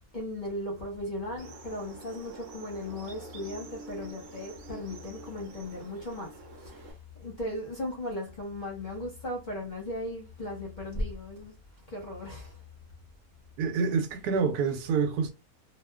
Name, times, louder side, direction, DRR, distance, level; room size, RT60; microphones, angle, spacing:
voice 1, 0.1-6.3 6.6-11.5 11.9-12.6, left 1 dB, 45° left, 0.6 m, -37 dB
sound 1, 1.4-6.9, right 3 dB, 65° right, 0.9 m, -47 dB
voice 2, 13.6-15.3, right 5 dB, 85° right, 1.1 m, -27 dB
2.7 x 2.1 x 2.2 m
omnidirectional pair, 1.6 m